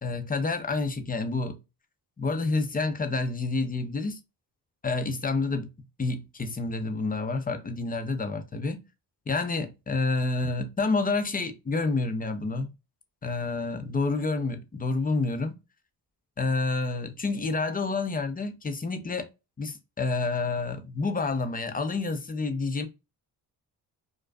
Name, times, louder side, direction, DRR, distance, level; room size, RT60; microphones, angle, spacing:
voice 1, 0.0-1.6 2.2-4.2 4.8-5.7 6.0-8.8 9.3-12.7 13.2-15.6 16.4-19.3 19.6-22.9, left 3 dB, 20° left, 0.6 m, -29 dB
2.4 x 2.3 x 2.2 m
supercardioid pair, 55°, 45 cm